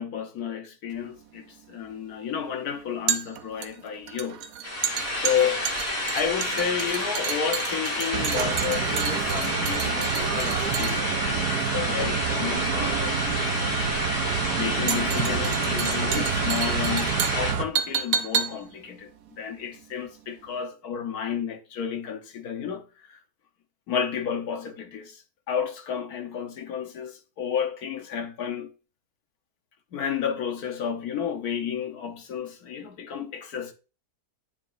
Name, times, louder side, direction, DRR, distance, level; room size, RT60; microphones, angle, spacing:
voice 1, 0.0-4.4 5.2-13.9 14.6-23.2 23.9-25.2 25.5-28.7 29.9-33.7, left 7 dB, 70° left, 1.5 m, -31 dB
sound 1, 0.9-20.2 20.5-20.6, right 8 dB, 65° right, 1.1 m, -32 dB
sound 2, 4.6-17.5, left 1 dB, 25° left, 2.6 m, -30 dB
sound 3, 8.1-17.6, right 7 dB, 85° right, 1.4 m, -28 dB
9.3 x 6.8 x 2.5 m
omnidirectional pair, 1.7 m